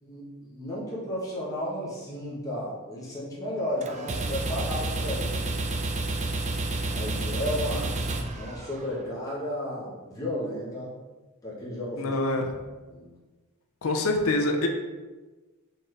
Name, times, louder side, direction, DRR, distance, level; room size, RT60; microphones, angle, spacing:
voice 1, 0.0-5.4 6.9-8.0 8.4-10.9 11.4-12.1 12.9-13.1, left 1 dB, 15° left, -7 dB, 1.1 m, -33 dB
sound 1, 3.8-9.0, right 2 dB, 30° right, 0.4 m, -30 dB
voice 2, 12.0-12.5 13.8-14.7, left 2 dB, 65° left, 3 dB, 0.6 m, -25 dB
4.2 x 3.9 x 3.3 m, 1.2 s
head